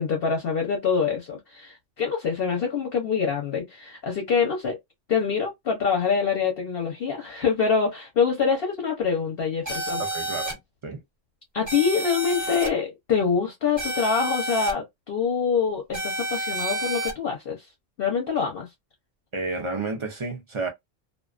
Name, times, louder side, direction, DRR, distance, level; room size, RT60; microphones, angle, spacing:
voice 1, 0.0-4.8 5.1-10.0 11.5-17.7 18.0-18.7, left 6 dB, 55° left, 0.8 m, -25 dB
sound 1, 9.7-10.5 11.7-12.7 13.8-14.7 15.9-17.1, right 1 dB, 15° right, 0.8 m, -29 dB
voice 2, 10.0-11.0 19.3-20.7, right 3 dB, 50° right, 0.3 m, -31 dB
2.4 x 2.2 x 2.4 m
omnidirectional pair, 1.3 m